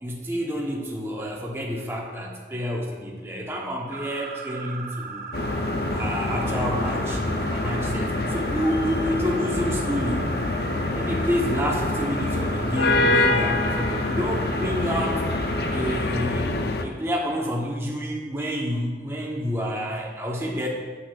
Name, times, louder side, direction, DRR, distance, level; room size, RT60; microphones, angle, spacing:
voice 1, 0.0-5.2 5.9-10.4 11.0-15.2 15.7-16.4 16.8-20.7, equal, 15° right, -1 dB, 1.0 m, -29 dB
sound 1, 3.9-16.0, right 4 dB, 45° right, 0.7 m, -37 dB
sound 2, 5.3-16.8, left 2 dB, 60° left, 0.5 m, -26 dB
8.9 x 8.2 x 2.5 m, 1.4 s
head